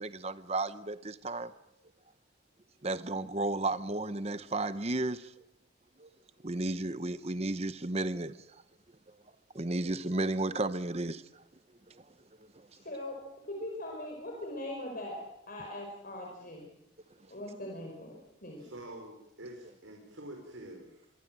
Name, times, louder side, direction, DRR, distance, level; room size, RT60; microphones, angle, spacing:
voice 1, 0.0-1.5 2.8-5.3 6.0-6.1 6.4-8.4 9.5-11.4 11.9-12.0, right 2 dB, 30° right, 0.9 m, -33 dB
voice 2, 12.9-13.2 13.4-15.2 15.5-16.6 17.3-18.6, left 1 dB, 45° left, 5.1 m, -40 dB
voice 3, 18.6-21.1, right 1 dB, 75° right, 4.8 m, -47 dB
25.0 x 24.0 x 7.6 m
head